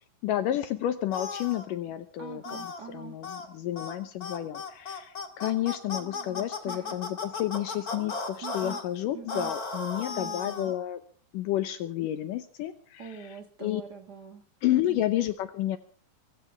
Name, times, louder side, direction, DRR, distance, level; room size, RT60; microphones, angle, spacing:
voice 1, 0.2-2.6 2.9-11.0 11.3-13.2 13.6-13.8 14.6-15.8, left 13 dB, 75° left, 10 dB, 2.4 m, -30 dB
sound 1, 1.1-1.7 2.4-2.8 3.2-3.5 3.8-4.0 4.2-8.8 9.3-10.8, left 4 dB, 30° left, 1.9 m, -36 dB
voice 2, 2.2-3.2 5.9-7.0 8.4-8.8 9.1-9.5 10.1-10.7 13.0-14.4 14.7-15.1, right 6 dB, 45° right, 5 dB, 1.4 m, -44 dB
24.0 x 15.0 x 3.5 m, 0.43 s
omnidirectional pair, 4.1 m